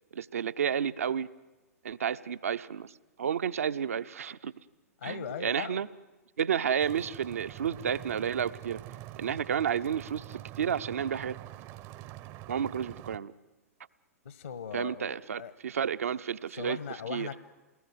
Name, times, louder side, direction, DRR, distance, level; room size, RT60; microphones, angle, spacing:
voice 1, 0.1-1.3 1.8-2.9 3.2-4.5 5.0-5.9 6.4-8.8 9.2-11.4 12.5-13.3 14.7-16.8 17.1-17.3, right 8 dB, 65° right, 13 dB, 0.8 m, -31 dB
voice 2, 5.0-5.8 14.2-15.5 16.5-17.4, left 7 dB, 65° left, 12 dB, 1.4 m, -39 dB
sound 1, 6.8-13.2, right 15 dB, 35° right, 0.8 m, -45 dB
28.0 x 20.5 x 9.3 m, 1.2 s
figure-of-eight pair, 105°, 8 cm